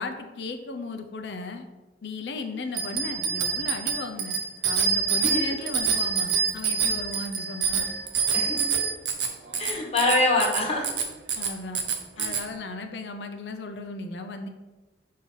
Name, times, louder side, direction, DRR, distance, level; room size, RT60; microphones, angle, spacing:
voice 1, 0.0-1.7 2.0-4.4 4.6-7.9 11.3-11.8 12.2-14.5, left 2 dB, 70° left, 5 dB, 0.6 m, -36 dB
Bicycle bell, 2.7-12.5, right 6 dB, 85° right, 0.7 m, -27 dB
voice 2, 8.3-8.8 9.6-11.0 12.2-12.4, left 2 dB, 35° left, -3 dB, 1.5 m, -25 dB
6.3 x 2.8 x 5.5 m, 1.2 s
head